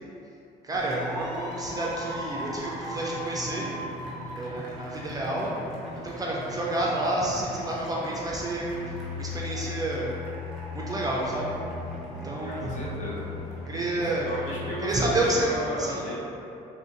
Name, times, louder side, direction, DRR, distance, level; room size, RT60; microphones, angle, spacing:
voice 1, 0.6-3.7 4.3-5.5 6.0-8.7 9.2-10.1 10.7-11.5 12.2-12.7 13.6-14.3 14.8-16.0, right 1 dB, 20° right, -4 dB, 0.4 m, -29 dB
sound 1, 0.7-15.0, left 2 dB, ahead, 1.1 m, -37 dB
voice 2, 12.4-13.2 14.0-16.2, equal, 45° left, -6 dB, 0.9 m, -35 dB
3.6 x 2.6 x 2.5 m, 2.8 s
cardioid pair, 110°, 17 cm